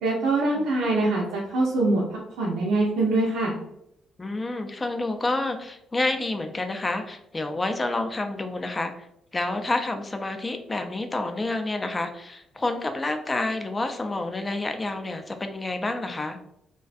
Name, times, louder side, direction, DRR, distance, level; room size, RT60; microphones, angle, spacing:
voice 1, 0.0-3.6, right 2 dB, 85° right, -6 dB, 0.5 m, -24 dB
voice 2, 4.2-9.1 9.3-16.4, left 2 dB, 25° left, 6 dB, 0.3 m, -29 dB
2.5 x 2.2 x 2.4 m, 0.78 s
supercardioid pair, 75°, 0 cm